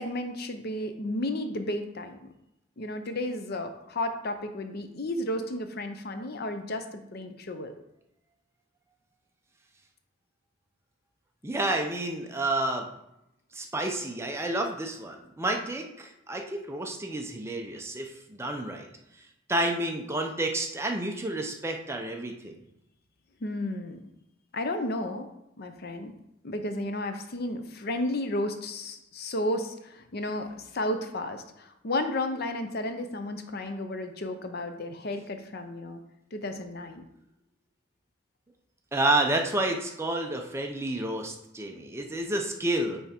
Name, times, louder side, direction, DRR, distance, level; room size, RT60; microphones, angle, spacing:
voice 1, 0.0-2.2 2.8-7.7 23.4-24.0 24.5-25.3 25.6-26.1 26.4-36.0 36.3-37.0, left 1 dB, 50° left, 7 dB, 0.6 m, -33 dB
voice 2, 11.4-12.9 13.5-18.9 19.5-22.5 38.9-43.0, right 1 dB, 15° right, 2 dB, 0.6 m, -30 dB
8.8 x 3.5 x 4.4 m, 0.84 s
head